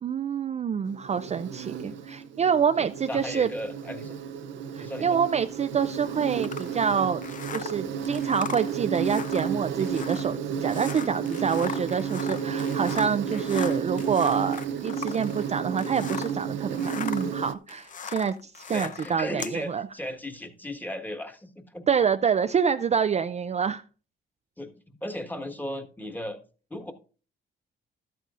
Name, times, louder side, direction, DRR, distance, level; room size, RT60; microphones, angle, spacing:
voice 1, 0.0-3.5 4.7-7.2 7.5-19.9 21.9-23.8, right 7 dB, 35° right, 9 dB, 0.4 m, -27 dB
Insect, 0.9-17.5, right 7 dB, 70° right, 0.7 m, -32 dB
voice 2, 2.8-4.2 4.8-5.2 18.7-21.8 24.6-24.7 25.0-26.4 26.7-26.9, left 1 dB, 10° left, 5 dB, 1.5 m, -36 dB
sound 1, 6.4-16.4 16.7-19.6, left 7 dB, 40° left, 0.6 m, -39 dB
13.0 x 9.1 x 2.5 m, 0.37 s
cardioid pair, 90°, 20 cm